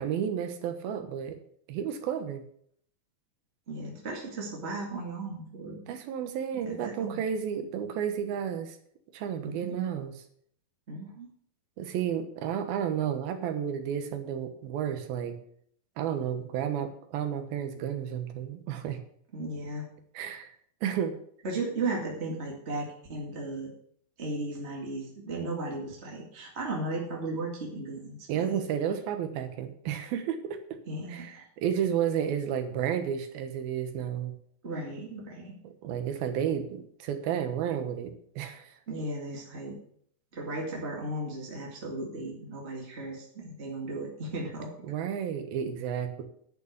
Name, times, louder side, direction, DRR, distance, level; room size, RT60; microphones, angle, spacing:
voice 1, 0.0-1.4 1.7-2.4 5.9-8.8 9.1-10.2 11.8-15.4 16.0-19.0 20.1-20.5 20.8-21.2 28.3-30.6 31.1-34.3 35.6-38.7 44.9-46.2, right 8 dB, 85° right, 8 dB, 3.1 m, -32 dB
voice 2, 3.7-5.8 6.7-7.2 9.4-9.8 10.9-11.3 19.3-19.9 21.4-23.7 24.2-28.6 30.9-31.4 34.6-35.5 38.9-39.8 40.3-44.7, right 2 dB, 25° right, -2 dB, 1.6 m, -36 dB
11.5 x 6.9 x 6.7 m, 0.65 s
omnidirectional pair, 4.2 m